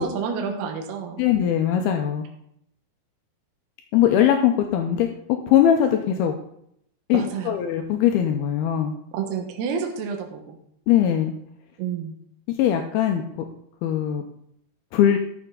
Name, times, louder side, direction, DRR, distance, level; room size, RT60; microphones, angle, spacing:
voice 1, 0.0-1.2 7.1-7.6 9.1-10.6 11.8-12.1, right 6 dB, 70° right, 2 dB, 3.1 m, -29 dB
voice 2, 1.2-2.3 3.9-5.1 5.5-6.3 7.1-8.9 10.9-11.3 12.6-13.2 13.8-14.2 14.9-15.2, left 10 dB, 80° left, 4 dB, 2.4 m, -20 dB
12.0 x 7.1 x 3.8 m, 0.71 s
omnidirectional pair, 4.9 m